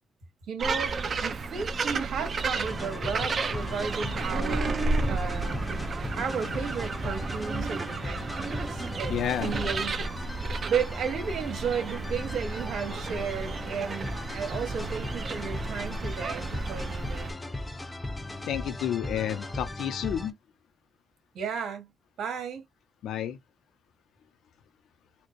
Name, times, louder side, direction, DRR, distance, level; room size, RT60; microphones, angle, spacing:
voice 1, 0.5-1.0 1.2-5.8 6.2-17.4 21.3-21.9 22.2-22.6, right 6 dB, 85° right, 1.9 m, -34 dB
sound 1, 0.6-17.3, right 3 dB, 45° right, 0.6 m, -32 dB
sound 2, 2.7-20.3, left 2 dB, 15° left, 0.6 m, -38 dB
voice 2, 8.4-9.5 10.4-10.7 18.4-20.3 23.0-23.4, left 10 dB, 90° left, 0.6 m, -32 dB
4.3 x 2.1 x 3.0 m
cardioid pair, 130°, 0 cm